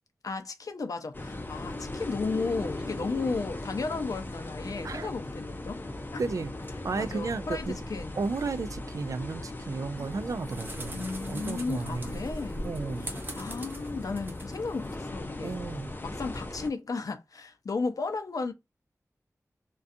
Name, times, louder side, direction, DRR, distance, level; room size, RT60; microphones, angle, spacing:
voice 1, 0.2-5.8 6.1-6.2 7.0-8.2 10.9-12.7 13.0-15.6 16.0-18.5, left 4 dB, 80° left, 0.5 m, -34 dB
sound 1, 1.1-16.7, left 1 dB, 35° left, 0.5 m, -38 dB
voice 2, 6.2-6.5 6.8-7.8 8.2-12.1 12.6-13.1 15.4-15.9, right 4 dB, 70° right, 0.3 m, -33 dB
sound 2, 10.0-15.0, right 2 dB, 35° right, 0.7 m, -45 dB
2.4 x 2.3 x 2.6 m
wide cardioid pair, 65°, 6 cm